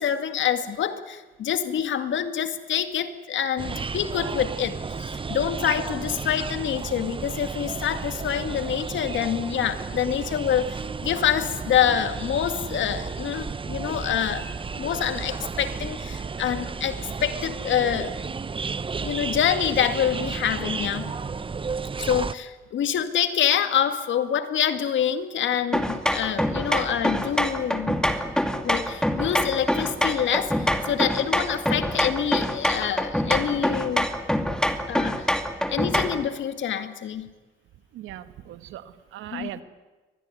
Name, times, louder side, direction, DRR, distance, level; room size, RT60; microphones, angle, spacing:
voice 1, 0.0-14.4 14.8-18.1 19.0-21.1 22.0-28.0 28.6-34.1 34.9-35.3 35.7-37.3 39.3-39.5, left 9 dB, 70° left, 9 dB, 2.2 m, -26 dB
sound 1, 3.6-22.3, right 5 dB, 25° right, 0.8 m, -33 dB
sound 2, 25.7-36.3, equal, 5° left, 2.3 m, -25 dB
voice 2, 37.9-39.6, right 13 dB, 90° right, 11 dB, 1.6 m, -39 dB
24.0 x 20.0 x 9.9 m, 1.2 s
cardioid pair, 90°, 20 cm